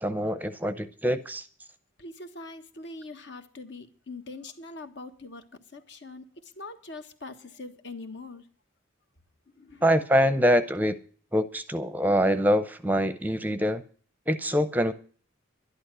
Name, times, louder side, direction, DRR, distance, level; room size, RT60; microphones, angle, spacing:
voice 1, 0.0-1.4 9.8-11.0 11.3-13.8 14.3-14.9, equal, 10° right, 0.7 m, -24 dB
voice 2, 2.0-8.5 9.5-9.9, left 3 dB, 60° left, 1.5 m, -43 dB
12.0 x 11.0 x 6.1 m
head